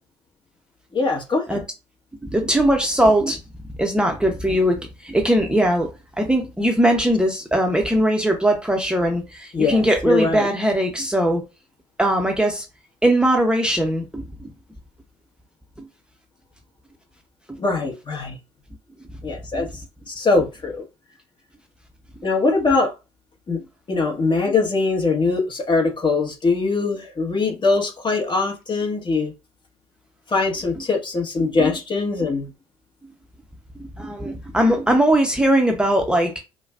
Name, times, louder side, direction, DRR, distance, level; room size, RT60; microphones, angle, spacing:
voice 1, 0.9-1.4 9.5-10.5 17.6-18.4 19.2-19.7 20.1-20.8 22.2-22.9 23.5-23.6 23.9-29.3 30.3-32.5, left 3 dB, 35° left, 1.5 m, -22 dB
voice 2, 2.3-3.4 3.8-4.8 5.0-5.9 6.2-11.4 12.0-12.6 13.0-14.5 17.5-17.6 19.5-19.6 31.4-31.5 33.8-36.4, right 1 dB, 5° right, 0.9 m, -20 dB
4.9 x 2.2 x 2.5 m
hypercardioid pair, 65°, 14 cm